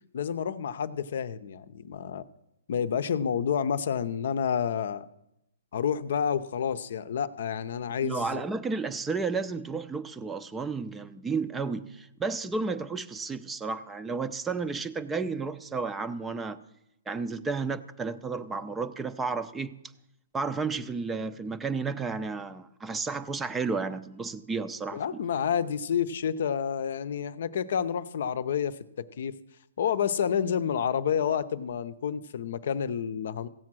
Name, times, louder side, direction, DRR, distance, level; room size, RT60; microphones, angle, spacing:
voice 1, 0.1-2.3 2.7-5.1 5.7-8.4 24.9-29.3 29.8-33.5, left 8 dB, 60° left, 0.6 m, -29 dB
voice 2, 8.0-16.6 17.1-19.8 20.3-25.2, right 4 dB, 10° right, 0.5 m, -32 dB
15.5 x 7.5 x 6.1 m
hypercardioid pair, 150°, 0 cm